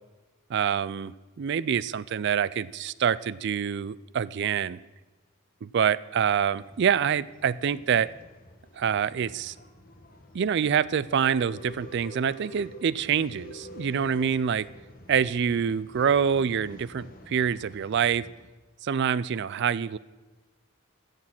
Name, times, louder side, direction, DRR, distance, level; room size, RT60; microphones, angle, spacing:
voice 1, 0.5-4.8 5.6-8.1 8.8-9.5 10.3-14.7 15.1-18.3 18.8-20.0, right 7 dB, 55° right, 19 dB, 0.4 m, -26 dB
Male speech man speaking / Chatter / Rattle, 6.5-18.4, equal, 45° left, 1.5 m, -48 dB
14.5 x 6.7 x 6.0 m, 1.2 s
head